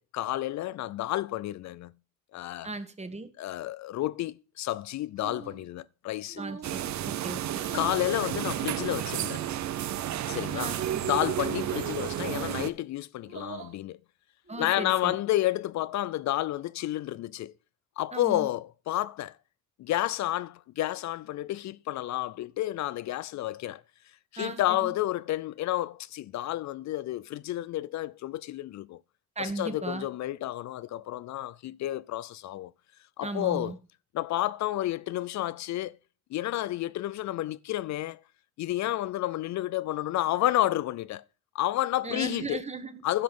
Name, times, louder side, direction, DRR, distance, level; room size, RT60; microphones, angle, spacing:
voice 1, 0.0-1.9 2.3-2.7 3.4-6.4 7.7-9.4 10.3-10.7 11.0-14.0 14.6-17.5 18.0-19.4 19.8-23.8 24.3-29.0 29.4-32.7 33.2-33.7 34.1-36.0 36.3-38.2 38.6-41.2 41.5-42.6 43.0-43.2, left 14 dB, 65° left, 0.5 m, -30 dB
voice 2, 2.6-3.3 6.4-7.7 10.6-11.0 14.5-15.1 18.1-18.5 24.4-24.9 29.4-30.1 33.2-33.8 42.0-43.0, right 3 dB, 20° right, 1.4 m, -37 dB
sound 1, 5.2-5.7 6.3-6.8 7.6-8.1 9.1-9.6 10.5-10.8 12.2-12.6 13.2-13.8 14.4-15.0, right 5 dB, 45° right, 2.9 m, -44 dB
sound 2, 6.6-12.7, right 11 dB, 65° right, 0.8 m, -32 dB
10.5 x 5.8 x 5.4 m
cardioid pair, 90°, 30 cm